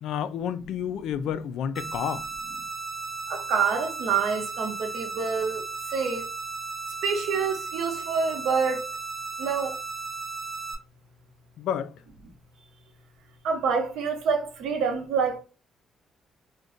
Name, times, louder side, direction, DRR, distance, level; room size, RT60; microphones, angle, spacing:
voice 1, 0.0-2.3 11.6-11.9, left 9 dB, 80° left, 0.3 m, -30 dB
sound 1, 1.7-10.7, right 4 dB, 15° left, 0.8 m, -35 dB
voice 2, 3.3-5.6 5.9-6.2 7.0-8.8 9.4-9.7 13.4-15.4, right 5 dB, 85° right, 0.8 m, -27 dB
2.5 x 2.1 x 3.7 m
cardioid pair, 90°, 0 cm